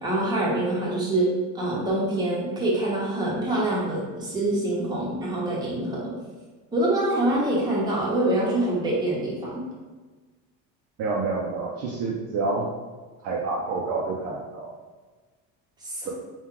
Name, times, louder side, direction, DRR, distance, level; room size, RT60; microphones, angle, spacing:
voice 1, 0.0-6.0 6.7-9.6 15.8-16.1, right 1 dB, 15° right, -5 dB, 0.9 m, -25 dB
voice 2, 11.0-12.7 13.2-14.7 16.0-16.1, right 3 dB, 50° right, -2 dB, 0.5 m, -28 dB
4.4 x 2.3 x 3.7 m, 1.3 s
cardioid pair, 165°, 31 cm